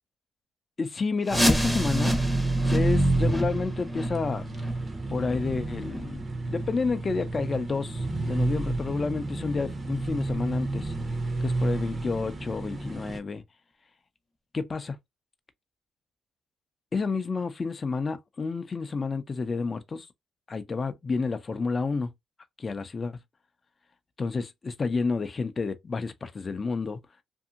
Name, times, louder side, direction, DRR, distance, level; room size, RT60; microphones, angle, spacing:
voice 1, 0.8-2.2 2.7-4.5 5.1-10.9 11.4-13.4 14.5-15.0 16.9-20.1 20.5-22.1 22.6-23.2 24.2-27.0, left 4 dB, 35° left, 0.5 m, -30 dB
sound 1, 1.2-6.8 7.2-7.3 7.8-7.9 8.5-8.6 9.2-9.3, left 1 dB, 5° right, 0.8 m, -30 dB
sound 2, 1.3-13.2, right 2 dB, 35° right, 0.8 m, -29 dB
2.6 x 2.6 x 2.4 m
cardioid pair, 90°, 0 cm